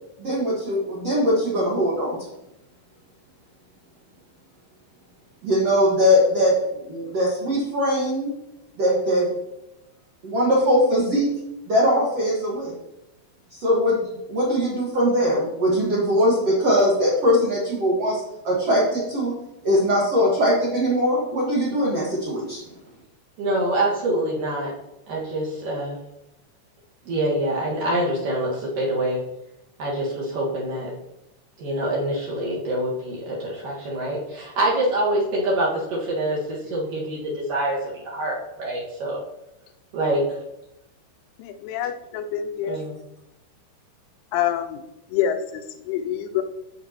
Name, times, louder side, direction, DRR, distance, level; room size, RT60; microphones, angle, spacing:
voice 1, 0.2-2.2 5.4-8.3 8.8-9.2 10.2-11.3 11.7-12.7 13.6-14.0 14.3-19.3 19.6-22.6, equal, 85° right, -5 dB, 1.3 m, -21 dB
voice 2, 23.4-24.7 25.1-26.0 27.0-29.2 29.8-30.9 31.6-39.2 39.9-40.2 42.7-42.9, right 1 dB, 55° right, -5 dB, 2.7 m, -25 dB
voice 3, 41.4-42.8 44.3-44.8 45.1-46.4, left 10 dB, 85° left, 7 dB, 3.0 m, -26 dB
14.0 x 5.2 x 2.9 m, 0.88 s
omnidirectional pair, 5.6 m